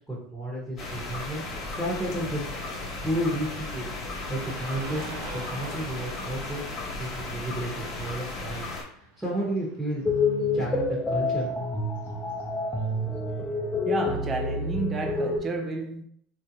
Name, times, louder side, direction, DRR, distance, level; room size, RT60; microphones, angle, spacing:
voice 1, 0.1-1.4 1.8-2.5 3.0-3.8 4.3-6.6 7.0-8.7 9.0-10.0 10.5-11.5, right 1 dB, 5° right, 1.1 m, -32 dB
sound 1, 0.8-8.8, left 2 dB, 35° left, 1.4 m, -35 dB
Car passing by / Traffic noise roadway noise, 4.1-13.2, right 2 dB, 85° right, 0.8 m, -47 dB
sound 2, 10.1-15.4, left 3 dB, 15° left, 0.7 m, -28 dB
voice 2, 13.8-16.0, right 3 dB, 25° right, 0.5 m, -31 dB
3.6 x 2.6 x 2.9 m
supercardioid pair, 110°, 0 cm